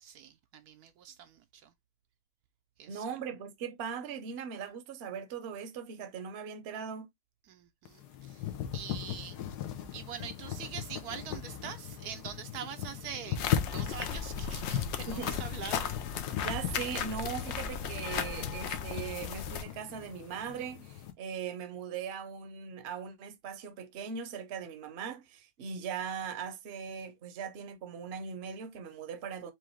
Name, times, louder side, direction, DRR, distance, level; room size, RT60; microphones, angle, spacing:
voice 1, 0.0-1.7 2.8-3.0 7.5-9.4 9.9-15.9, right 8 dB, 75° right, 1.1 m, -44 dB
voice 2, 2.9-7.1 15.1-15.3 16.4-29.5, right 7 dB, 50° right, 0.9 m, -39 dB
sound 1, 7.9-21.1, left 10 dB, 85° left, 1.3 m, -38 dB
sound 2, 13.3-19.6, left 7 dB, 65° left, 0.7 m, -36 dB
4.7 x 2.5 x 3.1 m
omnidirectional pair, 1.7 m